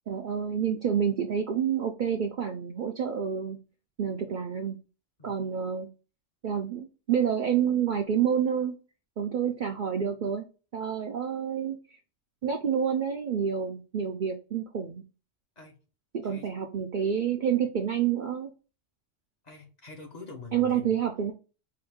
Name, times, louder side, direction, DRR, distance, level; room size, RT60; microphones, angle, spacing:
voice 1, 0.1-3.6 4.0-4.8 5.2-5.9 6.4-8.7 9.2-10.5 10.7-11.8 12.4-15.0 16.1-18.5 20.5-21.3, right 8 dB, 55° right, 0.6 m, -28 dB
voice 2, 16.2-16.5 19.4-21.0, left 2 dB, 40° left, 0.9 m, -45 dB
4.7 x 2.6 x 3.5 m
omnidirectional pair, 1.2 m